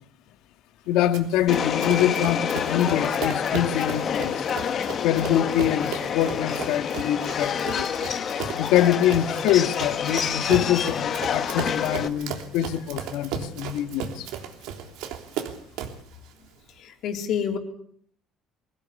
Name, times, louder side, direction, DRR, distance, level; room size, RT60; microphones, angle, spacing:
voice 1, 0.9-4.5 5.0-7.9 8.6-14.3, left 11 dB, 85° left, 1.7 m, -24 dB
Run, 1.1-16.1, right 8 dB, 90° right, 3.3 m, -36 dB
Subway metro underground, 1.5-12.1, left 8 dB, 40° left, 1.5 m, -28 dB
voice 2, 16.8-17.6, left 8 dB, 55° left, 3.7 m, -28 dB
23.0 x 16.5 x 8.4 m
cardioid pair, 160°, 0 cm